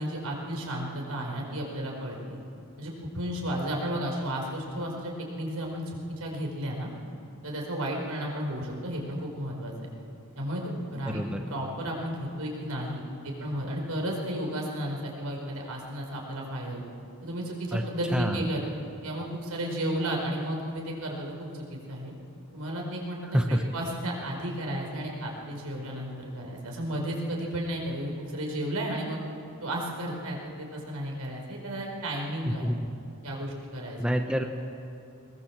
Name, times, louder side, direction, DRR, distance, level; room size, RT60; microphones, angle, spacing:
voice 1, 0.0-2.4 2.8-6.9 7.4-9.7 10.4-11.2 11.5-13.0 13.4-16.8 17.2-18.6 19.0-22.1 22.5-29.2 29.6-32.7 33.2-34.0, right 1 dB, 80° right, 0 dB, 4.9 m, -33 dB
voice 2, 11.0-11.4 17.7-17.8 18.1-18.4 23.3-23.6 32.4-32.9 34.0-34.4, equal, 5° right, 4 dB, 1.0 m, -27 dB
21.5 x 20.0 x 7.4 m, 2.4 s
head